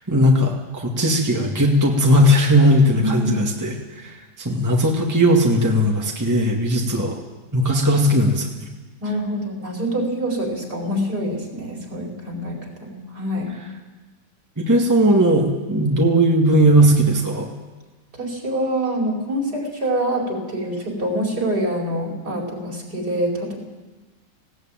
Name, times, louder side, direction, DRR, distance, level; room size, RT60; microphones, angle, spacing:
voice 1, 0.1-7.2 7.5-8.7 14.6-17.5, equal, 10° right, 0 dB, 1.9 m, -18 dB
voice 2, 3.0-3.4 9.0-13.5 18.1-23.6, right 1 dB, 55° right, 0 dB, 5.2 m, -25 dB
19.0 x 17.5 x 9.0 m, 1.2 s
omnidirectional pair, 2.0 m